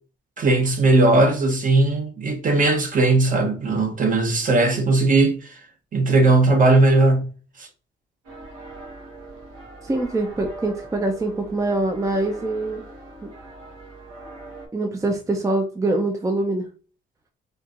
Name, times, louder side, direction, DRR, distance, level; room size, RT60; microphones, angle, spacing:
voice 1, 0.4-5.6 5.9-7.3 7.6-7.7, right 2 dB, 40° right, 1.0 m, -18 dB
sound 1, 8.2-14.7, right 2 dB, 80° right, 1.7 m, -41 dB
voice 2, 9.8-12.8 13.2-13.3 14.7-16.6, right 2 dB, 15° right, 0.5 m, -24 dB
4.4 x 2.5 x 2.5 m
cardioid pair, 90°, 20 cm